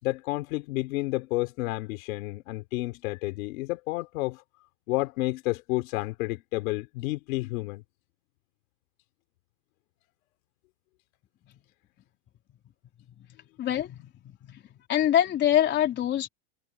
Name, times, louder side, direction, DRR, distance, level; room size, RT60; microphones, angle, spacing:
voice 1, 0.0-4.4 4.9-7.8, left 21 dB, 65° left, 3.4 m, -30 dB
voice 2, 13.6-14.6 14.9-16.3, left 11 dB, 25° left, 3.8 m, -25 dB
supercardioid pair, 175°, 44 cm